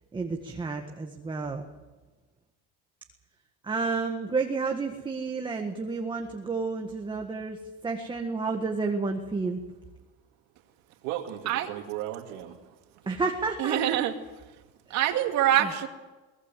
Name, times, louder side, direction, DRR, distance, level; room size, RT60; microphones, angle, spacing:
voice 1, 0.1-1.7 3.7-7.6 7.8-9.6 13.1-14.0, right 4 dB, 15° right, 3 dB, 1.7 m, -30 dB
voice 2, 11.0-13.2, right 12 dB, 80° right, -1 dB, 2.8 m, -37 dB
voice 3, 13.6-14.1 14.9-15.9, right 11 dB, 65° right, 5 dB, 2.5 m, -24 dB
23.0 x 19.0 x 7.6 m, 1.2 s
cardioid pair, 140°, 31 cm